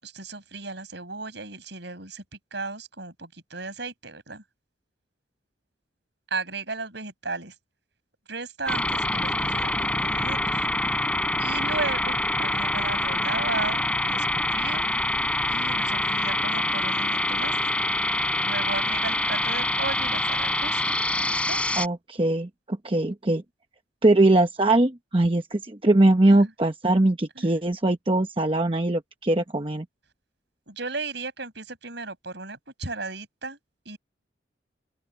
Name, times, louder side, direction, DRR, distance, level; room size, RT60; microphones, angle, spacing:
voice 1, 0.0-2.2 2.5-4.4 6.3-7.5 8.3-10.7 11.4-14.9 15.5-17.5 18.4-20.8 21.2-21.6 26.3-26.5 27.4-27.5 30.7-33.6 33.9-34.0, right 3 dB, 65° right, 7.5 m, -35 dB
sound 1, 8.7-21.9, left 1 dB, 5° left, 3.8 m, -25 dB
voice 2, 21.8-23.4 24.0-29.8, right 2 dB, 30° right, 1.0 m, -21 dB
open air
head